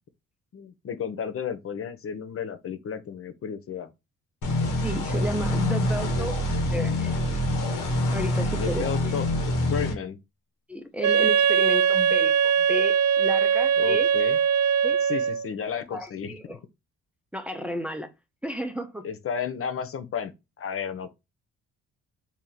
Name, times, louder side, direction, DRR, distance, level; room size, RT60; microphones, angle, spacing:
voice 1, 0.5-3.9 8.6-9.3 9.7-10.2 13.8-14.4 15.0-16.6 19.0-21.1, left 7 dB, 45° left, 0.7 m, -33 dB
sound 1, 4.4-9.9, left 1 dB, 85° left, 1.3 m, -26 dB
voice 2, 4.8-7.2 8.1-9.2 10.7-14.1 14.8-15.0 15.9-16.6 17.3-18.1 18.4-19.0, equal, 5° right, 0.6 m, -33 dB
Wind instrument woodwind instrument, 11.0-15.5, right 7 dB, 70° right, 0.5 m, -21 dB
3.1 x 2.8 x 3.8 m
cardioid pair, 90°, 30 cm